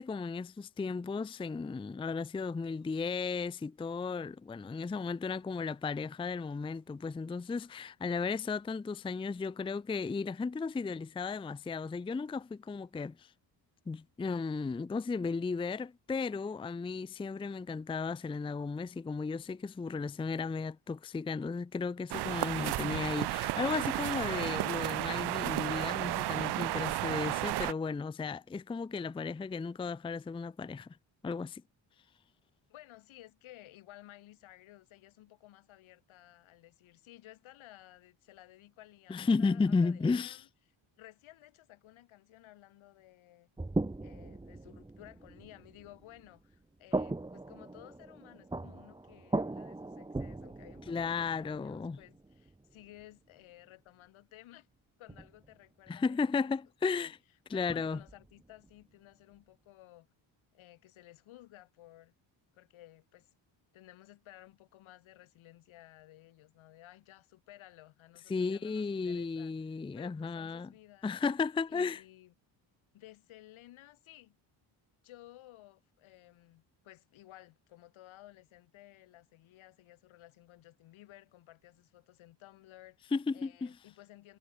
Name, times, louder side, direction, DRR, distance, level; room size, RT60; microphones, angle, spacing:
voice 1, 0.0-13.3 13.9-30.9 31.2-31.6 39.1-40.4 50.9-52.0 55.9-57.2 57.5-58.0 68.3-70.7 71.0-72.0 83.1-83.7, left 4 dB, 10° left, 0.5 m, -34 dB
sound 1, 22.1-27.7, right 16 dB, 55° right, 0.6 m, -33 dB
voice 2, 32.7-40.5 41.0-43.5 44.0-54.7 55.0-56.5 56.9-57.1 57.5-60.1 60.5-62.1 62.5-63.3 63.7-69.5 70.0-71.1 71.7-72.3 72.9-74.4 75.0-84.4, left 15 dB, 85° left, 5.6 m, -56 dB
sound 2, 43.6-46.6 46.9-53.0 55.1-55.5 57.7-58.7, right 2 dB, 10° right, 1.2 m, -39 dB
cardioid pair, 100°, 47 cm